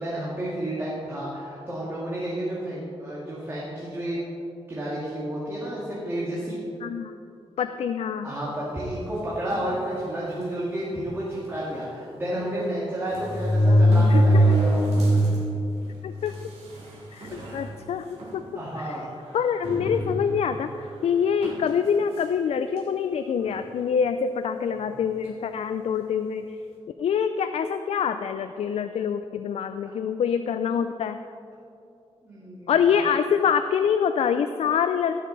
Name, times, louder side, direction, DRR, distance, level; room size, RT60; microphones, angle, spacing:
voice 1, 0.0-4.2 4.7-6.6 8.2-14.8 17.3-17.7 18.5-19.1 32.2-32.9, right 1 dB, 20° right, -7 dB, 2.1 m, -31 dB
voice 2, 6.8-7.1 7.6-8.3 13.7-13.8 14.1-14.6 16.0-16.4 17.1-18.1 18.8-19.0 19.3-20.7 21.0-26.4 27.0-31.2 32.7-35.1, left 7 dB, 70° left, 9 dB, 0.4 m, -25 dB
sound 1, 9.5-9.8 10.5-10.6 10.9-11.0 12.3-12.4 13.1-15.4 15.8-15.9 16.7-16.8 17.2-17.6 18.2-18.3 19.6-20.4 21.4-21.7, equal, 85° right, 2.9 m, -21 dB
17.0 x 6.6 x 4.0 m, 2.6 s
wide cardioid pair, 135°, 11 cm